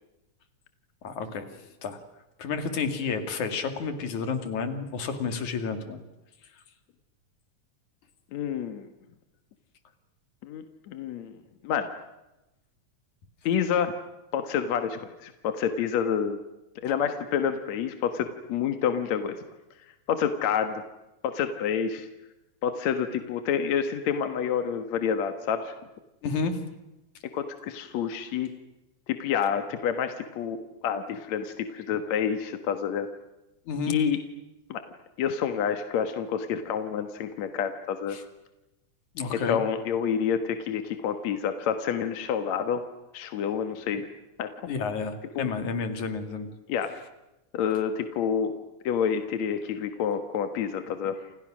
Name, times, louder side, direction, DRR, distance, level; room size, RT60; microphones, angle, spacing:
voice 1, 1.0-2.0 2.4-6.0 26.2-26.6 33.7-34.0 38.1-38.2 39.2-39.6 44.7-46.5, left 5 dB, 85° left, 8 dB, 3.8 m, -31 dB
voice 2, 8.3-8.9 10.4-11.3 11.6-11.9 13.4-14.0 14.3-16.4 16.8-19.4 20.1-20.8 21.2-22.1 22.6-25.7 27.3-28.5 29.1-33.1 33.9-34.2 34.7-34.8 35.2-38.2 39.3-42.8 43.1-44.1 44.4-44.5 45.4-45.5 46.7-46.9 47.5-48.5 48.8-51.2, left 7 dB, 70° left, 8 dB, 2.7 m, -28 dB
29.5 x 28.0 x 6.3 m, 0.97 s
omnidirectional pair, 3.3 m